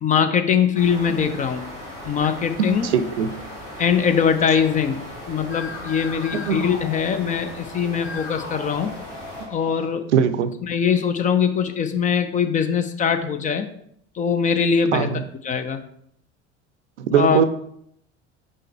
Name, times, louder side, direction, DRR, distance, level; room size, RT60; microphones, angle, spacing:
voice 1, 0.0-1.6 2.0-2.9 3.8-8.9 9.5-10.1 10.7-13.7 14.2-15.1 15.4-15.8 17.1-17.4, left 7 dB, 20° left, 9 dB, 0.5 m, -22 dB
sound 1, 0.7-9.5, left 1 dB, 85° left, 2.0 m, -38 dB
voice 2, 2.6-3.3 6.3-6.6 10.1-10.5 14.9-15.2 17.0-17.4, right 8 dB, 70° right, 11 dB, 0.6 m, -20 dB
sound 2, 5.4-7.6 8.0-9.9, left 4 dB, 55° left, 1.5 m, -38 dB
5.4 x 5.3 x 3.4 m, 0.69 s
figure-of-eight pair, 70°, 36 cm